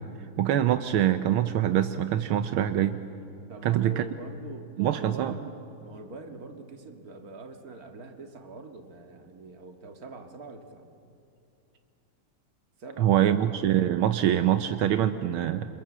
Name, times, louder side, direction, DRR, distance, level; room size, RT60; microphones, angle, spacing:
voice 1, 0.4-3.0 3.6-4.0 4.8-5.4 13.0-15.7, right 11 dB, 80° right, 10 dB, 1.6 m, -24 dB
voice 2, 3.5-5.6 5.8-10.9 12.8-13.5, right 3 dB, 45° right, 5 dB, 2.2 m, -43 dB
29.5 x 26.0 x 7.4 m, 2.7 s
omnidirectional pair, 2.3 m